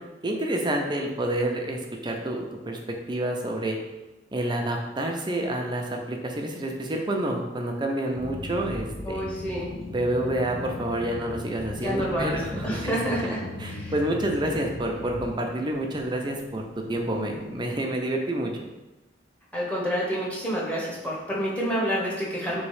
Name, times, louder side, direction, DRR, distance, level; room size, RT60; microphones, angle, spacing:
voice 1, 0.0-2.8 3.1-3.8 4.3-9.2 9.9-16.6 16.9-18.5, right 1 dB, 25° right, 2 dB, 0.6 m, -28 dB
sound 1, 8.2-15.3, left 2 dB, 35° left, 0.6 m, -38 dB
voice 2, 9.0-9.7 11.8-12.3 12.6-13.4 13.7-13.9 19.5-22.6, equal, 10° left, -5 dB, 1.1 m, -28 dB
sound 2, 9.7-17.6, left 2 dB, 75° left, 0.7 m, -45 dB
3.5 x 3.1 x 4.8 m, 1.1 s
head